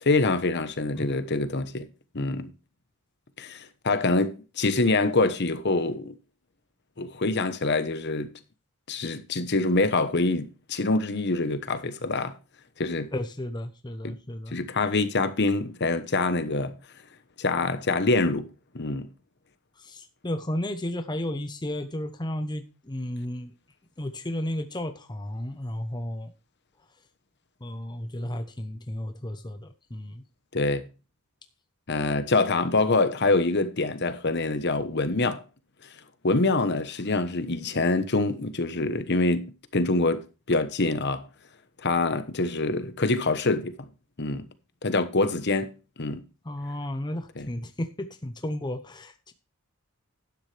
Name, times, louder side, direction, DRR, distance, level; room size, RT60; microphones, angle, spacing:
voice 1, 0.0-1.9 2.1-2.5 3.4-6.1 7.0-8.3 8.9-12.3 12.8-13.1 14.0-14.1 14.5-16.7 17.4-18.5 18.7-19.1 30.5-30.9 31.9-35.4 36.2-41.3 41.8-43.8 44.2-44.5 44.8-45.7 46.0-46.2 47.4-47.5, left 3 dB, 50° left, 1.1 m, -25 dB
voice 2, 13.1-14.6 19.8-23.5 24.0-26.3 27.6-30.2 46.4-49.3, left 1 dB, 20° left, 0.8 m, -33 dB
12.0 x 9.7 x 3.3 m
head